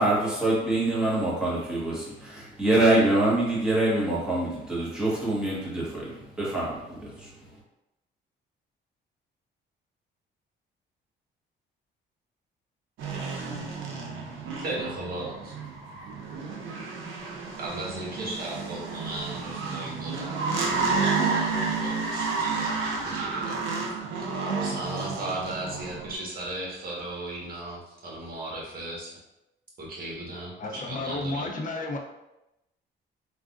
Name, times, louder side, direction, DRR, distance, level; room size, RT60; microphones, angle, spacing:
voice 1, 0.0-7.6, right 2 dB, 5° right, -7 dB, 1.3 m, -25 dB
sound 1, 13.0-26.2, right 4 dB, 80° right, 0.6 m, -31 dB
voice 2, 14.6-15.5 17.6-20.5 20.8-23.6 24.6-29.2 29.8-31.5, right 2 dB, 50° right, -4 dB, 1.2 m, -36 dB
voice 3, 30.6-32.0, left 2 dB, 40° left, 2 dB, 0.6 m, -32 dB
3.3 x 2.5 x 2.4 m, 0.91 s
cardioid pair, 90°, 20 cm